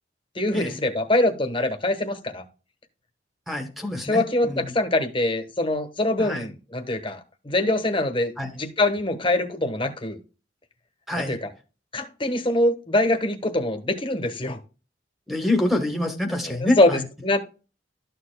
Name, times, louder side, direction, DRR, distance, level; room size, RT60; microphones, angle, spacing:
voice 1, 0.3-2.4 4.0-10.2 11.1-11.5 11.9-14.6 16.5-17.4, left 1 dB, 30° left, 1.2 m, -24 dB
voice 2, 3.5-4.7 6.2-6.5 8.4-8.5 11.1-11.4 15.3-17.0, left 1 dB, ahead, 1.3 m, -26 dB
12.5 x 6.8 x 2.2 m
head